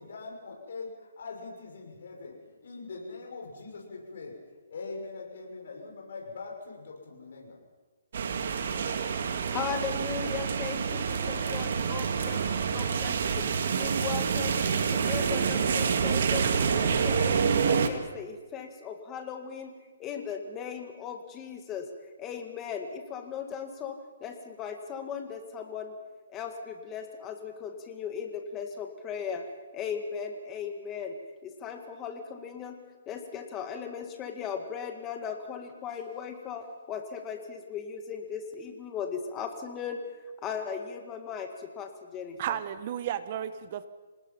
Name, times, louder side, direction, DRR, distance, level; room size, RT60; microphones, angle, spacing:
voice 1, 0.0-2.3 2.6-7.6, left 3 dB, 60° left, 0 dB, 6.4 m, -42 dB
sound 1, 8.1-17.9, right 6 dB, 55° right, 1.9 m, -27 dB
voice 2, 9.5-13.5 13.8-14.6 14.9-19.7 20.0-21.9 22.2-25.9 26.3-29.5 29.7-31.2 31.4-32.8 33.1-40.0 40.4-42.6, left 7 dB, 15° left, 5 dB, 2.0 m, -37 dB
voice 3, 42.4-43.9, right 10 dB, 35° right, 13 dB, 1.0 m, -33 dB
26.5 x 19.5 x 5.8 m, 1.3 s
hypercardioid pair, 165°, 0 cm